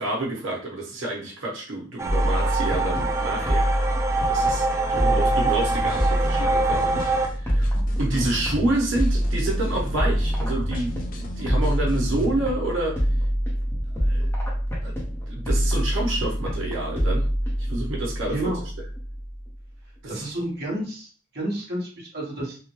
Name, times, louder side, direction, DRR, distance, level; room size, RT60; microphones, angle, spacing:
voice 1, 0.0-3.7 4.3-7.0 7.3-12.9 14.1-14.3 14.8-14.9 15.3-17.2 17.7-18.5 20.0-20.3, right 2 dB, 90° right, -4 dB, 1.0 m, -28 dB
sound 1, 2.0-7.3, right 3 dB, 15° right, 0.3 m, -25 dB
sound 2, 2.1-19.7, equal, 15° left, 0.8 m, -26 dB
voice 2, 4.9-5.4 18.3-18.6 20.1-22.6, right 1 dB, 55° right, -3 dB, 1.1 m, -31 dB
sound 3, 5.8-12.4, left 1 dB, 45° left, 0.5 m, -38 dB
3.6 x 2.2 x 3.0 m, 0.40 s
head